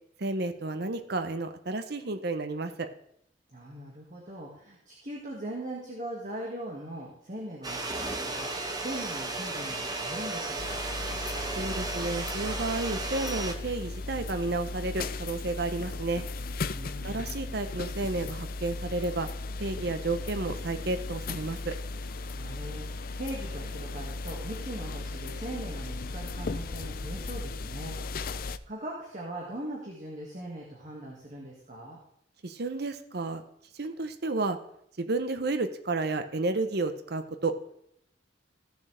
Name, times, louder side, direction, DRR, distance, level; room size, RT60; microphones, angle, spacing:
voice 1, 0.2-2.9 11.6-16.2 17.0-19.3 19.6-21.8 32.4-33.4 33.7-34.6 35.0-37.6, right 3 dB, 60° right, 8 dB, 0.8 m, -31 dB
voice 2, 3.5-7.8 8.1-10.8 16.7-17.4 22.4-32.0, right 1 dB, 45° right, -3 dB, 2.0 m, -40 dB
sound 1, 7.6-13.5, right 2 dB, 20° right, 1.1 m, -34 dB
sound 2, 10.6-28.6, left 3 dB, 50° left, 0.5 m, -36 dB
16.0 x 7.4 x 3.4 m, 0.72 s
head